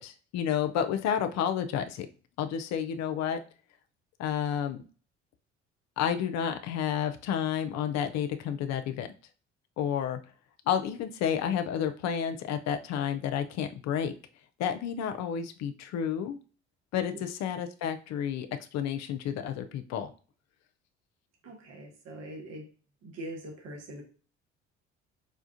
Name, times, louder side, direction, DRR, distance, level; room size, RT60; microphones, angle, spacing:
voice 1, 0.0-2.1 2.4-3.4 4.2-4.8 6.0-9.1 9.8-10.2 10.7-14.1 14.6-16.4 16.9-20.1, left 8 dB, 50° left, 0.5 m, -30 dB
voice 2, 21.4-22.7 23.0-24.0, right 1 dB, 50° right, 1.2 m, -42 dB
4.9 x 2.4 x 2.5 m
hypercardioid pair, 55°, 34 cm